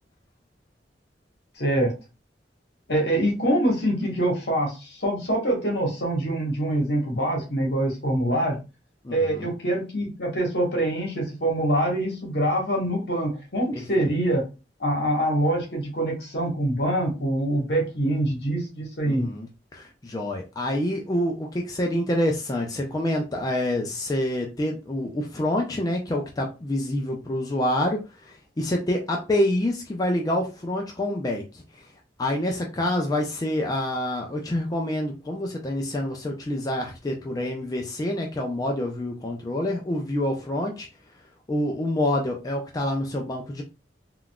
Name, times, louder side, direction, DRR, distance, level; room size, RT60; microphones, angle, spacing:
voice 1, 1.6-1.9 2.9-8.6 9.1-14.5 14.8-19.3, right 1 dB, 65° left, 1 dB, 1.2 m, -25 dB
voice 2, 9.0-9.5 13.7-14.1 19.0-31.9 32.2-40.9 41.5-43.6, left 1 dB, 20° left, 0 dB, 0.4 m, -27 dB
3.7 x 2.3 x 2.2 m, 0.30 s
head